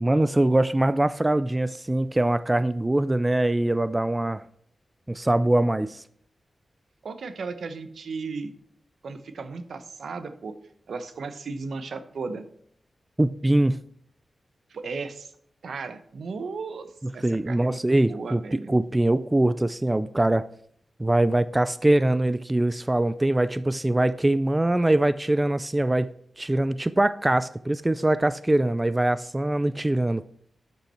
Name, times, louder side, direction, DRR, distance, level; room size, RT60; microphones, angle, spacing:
voice 1, 0.0-4.4 5.1-6.0 13.2-13.8 17.2-20.4 21.0-26.1 26.4-30.3, right 1 dB, 15° right, 13 dB, 0.3 m, -23 dB
voice 2, 7.0-8.5 9.0-10.5 10.9-12.4 14.7-15.3 15.6-18.7, right 4 dB, 80° right, 10 dB, 0.9 m, -35 dB
11.5 x 5.7 x 4.4 m, 0.63 s
wide cardioid pair, 105°, 0 cm